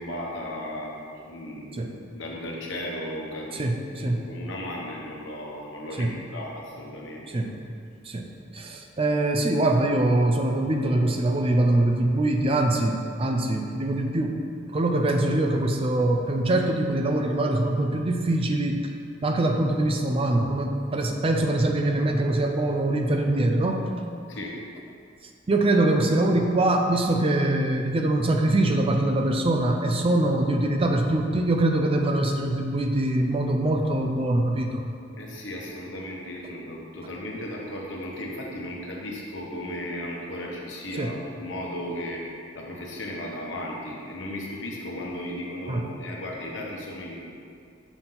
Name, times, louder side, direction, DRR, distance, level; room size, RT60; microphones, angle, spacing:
voice 1, 0.0-3.6 3.9-7.3 24.3-24.5 35.2-42.2 42.5-47.2, left 1 dB, 70° left, -2 dB, 1.2 m, -35 dB
voice 2, 3.5-4.2 6.0-6.1 7.3-7.6 8.0-8.3 8.5-18.9 19.2-23.8 25.5-34.9 41.0-41.1 45.7-45.9, right 1 dB, 30° right, 3 dB, 0.4 m, -23 dB
6.0 x 5.8 x 3.9 m, 2.3 s
head